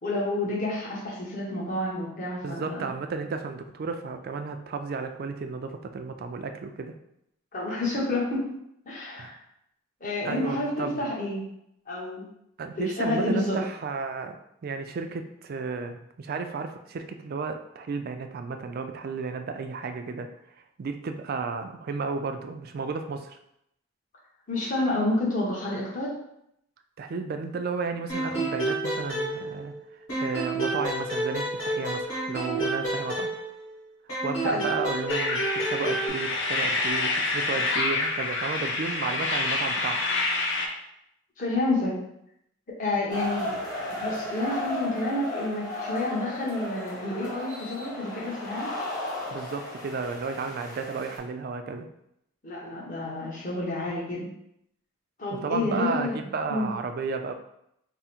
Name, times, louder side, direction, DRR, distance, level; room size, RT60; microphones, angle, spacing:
voice 1, 0.0-2.8 7.5-8.5 8.9-9.4 10.0-11.5 11.9-12.3 12.7-13.6 24.5-26.1 34.4-34.6 41.4-42.0 42.8-43.5 43.9-48.8 52.4-54.3 55.2-56.2 56.5-56.7, left 2 dB, 40° left, -5 dB, 1.0 m, -29 dB
voice 2, 2.4-6.9 9.2-9.3 10.2-11.1 12.6-14.4 14.6-20.3 20.8-23.4 27.0-33.3 34.2-40.0 49.3-51.9 55.3-57.3, right 4 dB, 45° right, 6 dB, 0.3 m, -33 dB
sound 1, 28.1-29.8 30.1-33.7 34.1-36.1, right 2 dB, 75° left, 1.4 m, -30 dB
sound 2, 35.1-40.7, left 3 dB, 60° left, 0.5 m, -27 dB
sound 3, 43.1-51.2, left 1 dB, 20° left, 1.0 m, -35 dB
3.6 x 2.1 x 4.3 m, 0.77 s
head